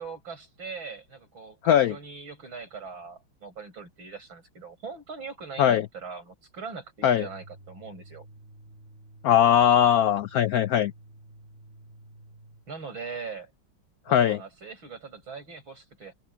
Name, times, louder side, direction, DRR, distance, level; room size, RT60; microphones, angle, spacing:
voice 1, 0.0-8.3 12.7-13.5 14.1-16.1, right 5 dB, 80° right, 8.3 m, -41 dB
voice 2, 1.6-1.9 5.6-5.9 7.0-7.3 9.2-10.9 14.1-14.4, left 10 dB, 80° left, 0.8 m, -20 dB
sound 1, 7.1-12.7, right 1 dB, 35° right, 7.0 m, -51 dB
omnidirectional pair, 2.1 m